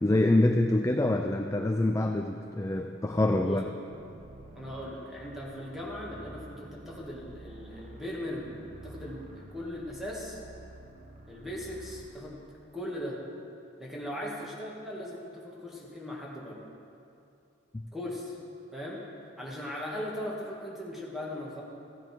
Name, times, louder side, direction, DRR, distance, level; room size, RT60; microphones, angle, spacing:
voice 1, 0.0-3.6 17.7-17.8, left 1 dB, 15° left, 3 dB, 0.4 m, -25 dB
sound 1, 3.9-12.1, right 2 dB, 35° right, 1.0 m, -49 dB
voice 2, 4.5-8.6 8.8-10.4 11.3-12.4 12.7-13.2 13.8-16.6 17.9-18.4 18.7-21.6, left 1 dB, ahead, -5 dB, 2.2 m, -38 dB
15.5 x 9.7 x 4.6 m, 2.6 s
head